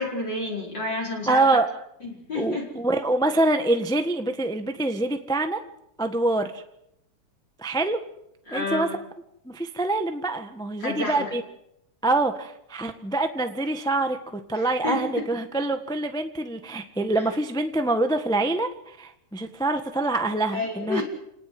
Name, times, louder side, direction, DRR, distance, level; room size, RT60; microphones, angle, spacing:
voice 1, 0.0-1.5 2.0-2.7 8.5-9.0 10.8-11.3 14.5-15.0 17.1-17.2 20.5-21.0, left 2 dB, 35° left, -1 dB, 5.5 m, -30 dB
voice 2, 1.3-1.7 2.3-5.6 6.0-6.6 7.6-8.0 8.5-8.9 9.4-11.4 12.0-21.0, right 2 dB, 5° left, 7 dB, 0.6 m, -25 dB
28.5 x 19.0 x 7.8 m, 0.81 s
omnidirectional pair, 3.3 m